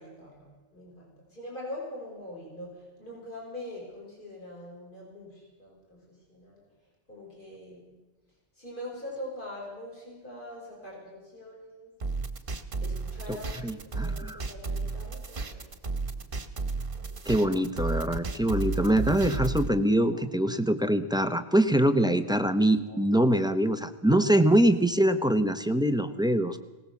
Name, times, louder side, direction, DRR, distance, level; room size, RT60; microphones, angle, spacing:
voice 1, 0.0-6.6 7.1-8.0 8.6-11.9 12.4-12.5 12.8-16.3 17.0-17.5 20.1-20.2 22.8-23.0, left 1 dB, 45° left, -3 dB, 6.5 m, -43 dB
sound 1, 12.0-19.7, right 3 dB, 50° right, 1.5 m, -33 dB
voice 2, 13.6-14.4 17.3-26.6, right 1 dB, 5° right, 10 dB, 0.8 m, -24 dB
20.0 x 18.5 x 7.1 m, 1.1 s
omnidirectional pair, 1.2 m